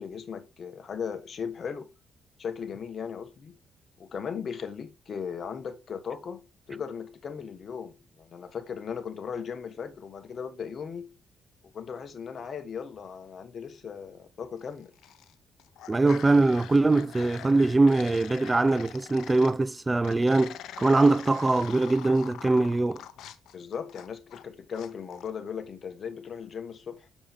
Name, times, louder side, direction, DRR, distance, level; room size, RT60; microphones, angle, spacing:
voice 1, 0.0-1.9 2.4-3.5 4.0-11.2 11.7-14.9 23.5-27.1, left 6 dB, 50° left, 1.3 m, -37 dB
sound 1, 14.8-15.3 15.6-19.6 20.0-24.4 24.7-25.3, left 11 dB, 80° left, 0.6 m, -44 dB
voice 2, 15.9-23.0, right 2 dB, 20° right, 0.3 m, -22 dB
7.2 x 4.9 x 3.6 m
cardioid pair, 90°, 0 cm